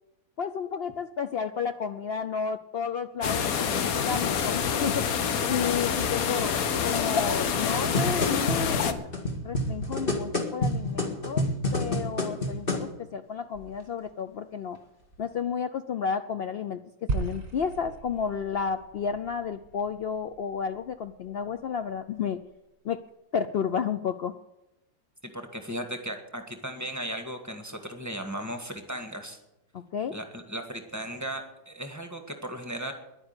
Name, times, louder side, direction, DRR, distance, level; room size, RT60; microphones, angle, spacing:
voice 1, 0.4-5.1 5.5-6.5 6.8-9.1 9.4-11.4 11.7-14.8 15.2-16.8 17.1-22.4 22.8-23.0 23.3-24.3 29.7-30.2, left 6 dB, 80° left, 10 dB, 0.5 m, -31 dB
sound 1, 3.2-8.9, left 7 dB, 65° left, 1.3 m, -27 dB
sound 2, 7.7-12.9 13.6-13.7, left 1 dB, 35° left, 2.1 m, -29 dB
sound 3, 17.1-21.5, right 4 dB, 35° right, 1.6 m, -37 dB
voice 2, 25.2-29.4 30.1-32.9, right 1 dB, 10° right, 5 dB, 1.6 m, -36 dB
11.0 x 9.6 x 9.7 m, 0.92 s
omnidirectional pair, 1.8 m